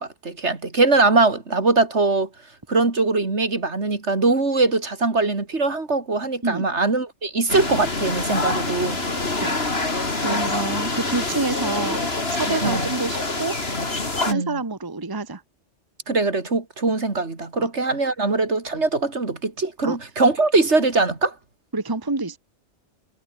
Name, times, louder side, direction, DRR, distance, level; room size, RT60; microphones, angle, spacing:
voice 1, 0.0-2.3 2.7-9.0 10.3-10.4 12.5-12.9 14.2-14.6 16.1-21.3, right 3 dB, 70° right, 3.3 m, -22 dB
sound 1, 7.5-14.3, left 2 dB, 60° left, 3.7 m, -26 dB
voice 2, 9.3-9.7 10.2-12.0 12.3-13.6 14.3-15.4 17.6-17.7 19.8-20.0 21.7-22.4, right 3 dB, 20° right, 1.3 m, -27 dB
omnidirectional pair, 1.2 m